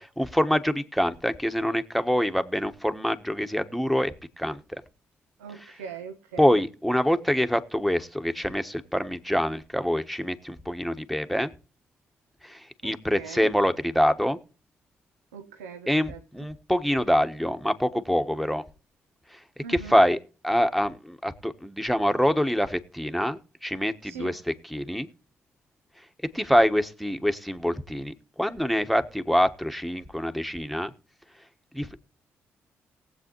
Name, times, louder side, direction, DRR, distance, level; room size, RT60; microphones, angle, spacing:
voice 1, 0.0-4.6 6.4-11.5 12.4-14.4 15.9-18.6 19.7-20.2 20.4-25.1 26.3-30.9 31.7-32.0, equal, ahead, 8 dB, 1.3 m, -25 dB
voice 2, 5.4-6.6 12.8-13.5 15.3-16.2 19.6-20.0 24.0-24.4, right 6 dB, 85° right, 7 dB, 0.7 m, -41 dB
19.0 x 8.0 x 3.1 m, 0.38 s
hypercardioid pair, 40°, 7 cm